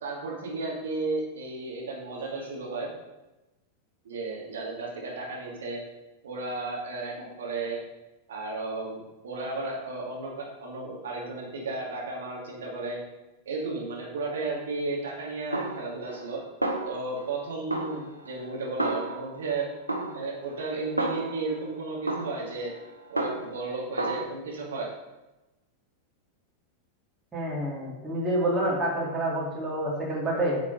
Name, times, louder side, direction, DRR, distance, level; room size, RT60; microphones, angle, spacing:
voice 1, 0.0-2.9 4.0-5.8 6.2-7.8 8.3-13.0 13.5-16.4 16.9-19.7 20.1-22.7 23.1-24.9, right 3 dB, 65° right, -3 dB, 2.6 m, -34 dB
Snare drum, 15.5-16.3 16.6-17.4 17.7-19.5 19.9-21.6 22.1-23.7 24.0-24.2, right 2 dB, 85° right, 1.0 m, -32 dB
voice 2, 27.3-30.6, right 1 dB, 15° right, -6 dB, 3.2 m, -28 dB
9.8 x 5.1 x 5.3 m, 1.0 s
figure-of-eight pair, 90°, 0 cm